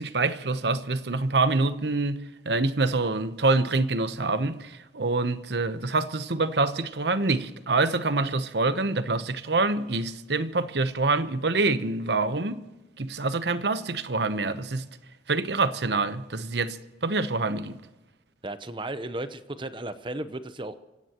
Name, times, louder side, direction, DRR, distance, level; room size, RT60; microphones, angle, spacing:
voice 1, 0.0-12.6 13.0-14.9 15.3-17.8, right 3 dB, 70° right, 1.0 m, -26 dB
voice 2, 18.4-20.7, right 1 dB, 25° right, 0.8 m, -35 dB
26.5 x 16.0 x 3.0 m
head